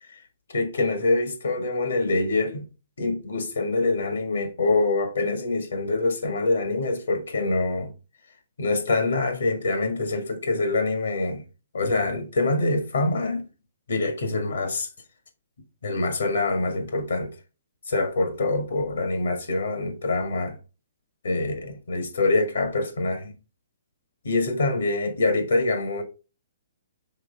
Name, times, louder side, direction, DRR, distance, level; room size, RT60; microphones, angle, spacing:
voice 1, 0.5-2.7 3.0-7.9 8.6-11.4 11.7-13.4 13.9-14.9 15.8-17.3 17.9-20.6 21.2-23.3 24.2-26.0, left 2 dB, 85° left, 1.6 m, -25 dB
6.5 x 3.3 x 4.9 m
hypercardioid pair, 140°, 0 cm